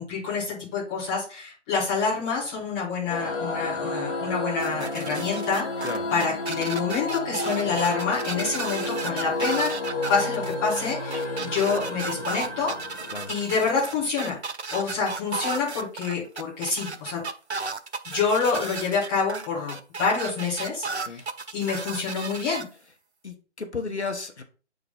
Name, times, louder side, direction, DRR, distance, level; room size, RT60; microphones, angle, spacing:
voice 1, 0.0-12.7 13.3-14.4 14.7-17.2 18.0-21.2 21.5-22.6, left 5 dB, 10° left, -6 dB, 1.4 m, -27 dB
sound 1, 3.1-14.0, left 2 dB, 30° left, 2.2 m, -31 dB
sound 2, 4.6-22.6, right 4 dB, 70° right, 0.7 m, -34 dB
voice 2, 23.2-24.4, left 4 dB, 70° left, 6 dB, 1.2 m, -33 dB
7.9 x 3.9 x 3.8 m, 0.37 s
figure-of-eight pair, 150°, 35 cm